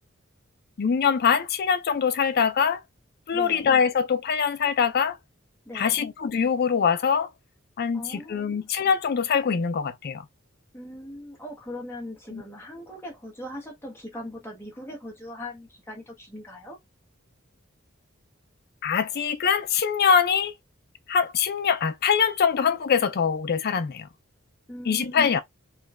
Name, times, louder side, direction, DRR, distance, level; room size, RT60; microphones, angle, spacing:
voice 1, 0.8-2.8 3.3-5.2 5.7-7.3 7.8-10.2 12.3-12.4 18.8-20.5 21.1-24.1 24.9-25.4, left 6 dB, 50° left, 0.4 m, -23 dB
voice 2, 3.3-3.7 5.7-6.0 7.9-8.7 10.7-16.8 24.7-25.4, left 1 dB, 10° left, 0.9 m, -40 dB
3.2 x 2.2 x 3.4 m
head